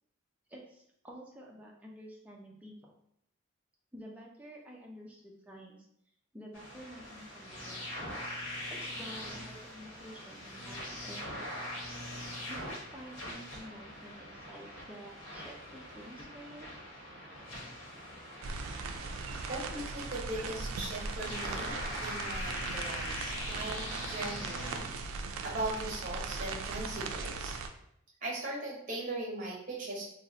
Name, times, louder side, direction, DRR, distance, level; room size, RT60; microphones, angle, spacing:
voice 1, 0.5-2.9 3.9-5.9 6.3-7.9 8.7-11.7 12.5-16.7, equal, 5° right, -2 dB, 0.4 m, -50 dB
sound 1, 6.5-24.8, left 1 dB, 85° left, 1.1 m, -42 dB
sound 2, 18.4-27.7, right 4 dB, 85° right, 0.3 m, -39 dB
voice 2, 19.5-24.9 25.2-27.5 28.2-30.1, right 2 dB, 40° right, -3 dB, 0.9 m, -39 dB
2.5 x 2.1 x 3.8 m, 0.73 s
head